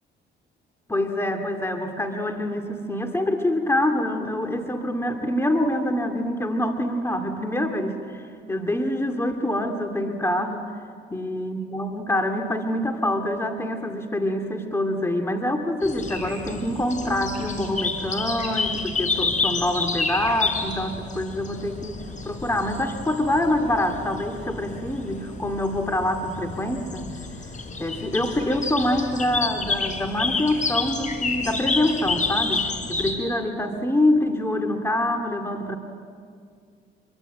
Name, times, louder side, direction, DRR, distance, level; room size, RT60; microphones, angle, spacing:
voice 1, 0.9-10.6 11.1-22.0 22.2-27.1 27.8-35.8, left 1 dB, 15° left, 4 dB, 2.2 m, -25 dB
sound 1, 15.8-33.1, left 4 dB, 40° left, 4.0 m, -29 dB
26.5 x 23.5 x 8.9 m, 2.2 s
cardioid pair, 90°, 20 cm